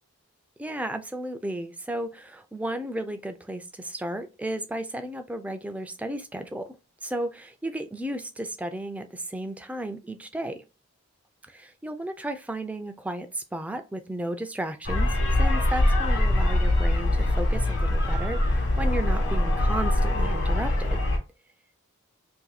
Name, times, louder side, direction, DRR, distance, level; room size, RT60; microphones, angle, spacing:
voice 1, 0.6-6.8 7.0-10.6 11.5-15.1 15.4-21.0, right 1 dB, 5° right, 0.3 m, -34 dB
sound 1, 14.8-21.2, left 1 dB, 55° left, 1.2 m, -23 dB
2.7 x 2.6 x 4.0 m
head